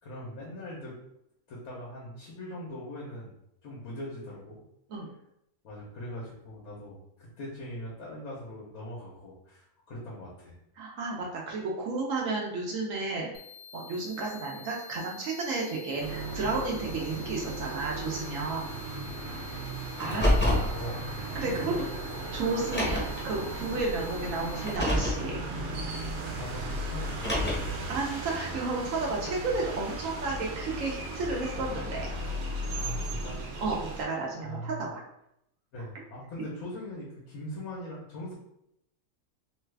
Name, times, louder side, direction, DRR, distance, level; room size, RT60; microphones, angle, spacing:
voice 1, 0.0-0.9 1.5-3.3 3.6-4.6 5.6-10.5 19.9-21.0 21.4-21.8 26.3-27.7 32.7-33.4 34.2-34.9 35.7-38.3, left 1 dB, 80° left, -6 dB, 1.3 m, -40 dB
voice 2, 10.8-13.3 13.7-18.7 20.0-20.3 21.3-21.7 22.3-25.4 27.9-32.1 33.6-35.0, right 3 dB, 70° right, -2 dB, 1.0 m, -32 dB
sound 1, 13.3-24.8, left 6 dB, 65° left, 0.8 m, -48 dB
sound 2, 16.0-34.0, right 1 dB, 90° right, 1.2 m, -36 dB
Car, 20.0-20.7 21.8-21.9 22.6-23.2 24.5-25.2 27.0-27.8, left 1 dB, 10° left, 0.7 m, -27 dB
3.2 x 2.3 x 3.2 m, 0.78 s
omnidirectional pair, 1.5 m